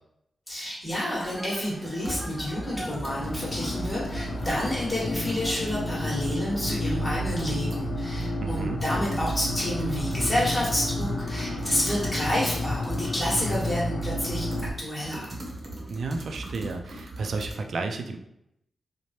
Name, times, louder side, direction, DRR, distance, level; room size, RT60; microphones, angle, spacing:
voice 1, 0.5-14.5 14.8-15.3, equal, 25° left, -6 dB, 1.2 m, -29 dB
sound 1, 1.1-6.7, equal, ahead, 0.4 m, -43 dB
sound 2, 2.0-5.0 5.5-5.9 6.3-6.4 6.9-7.0 7.4-7.9 8.2-8.3 8.6-13.7 14.0-17.5, right 1 dB, 40° right, 0.7 m, -40 dB
sound 3, 2.8-14.7, left 1 dB, 65° left, 0.5 m, -31 dB
voice 2, 8.4-8.8 15.9-18.2, right 3 dB, 70° right, 5 dB, 0.3 m, -32 dB
3.1 x 2.1 x 2.7 m, 0.80 s
wide cardioid pair, 100°, 0 cm